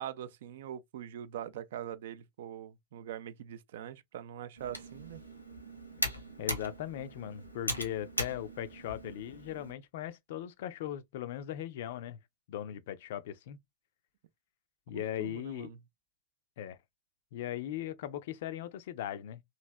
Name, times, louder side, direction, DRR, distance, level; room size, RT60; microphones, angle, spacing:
voice 1, 0.0-5.2 14.9-15.8, right 10 dB, 55° right, 0.3 m, -43 dB
Computer keyboard, 4.6-9.7, left 1 dB, 90° left, 0.8 m, -39 dB
voice 2, 6.4-12.2 12.5-13.6 14.9-15.7 16.6-16.8 17.3-19.4, left 11 dB, 55° left, 0.4 m, -39 dB
3.1 x 2.6 x 2.3 m
figure-of-eight pair, 90°, 0 cm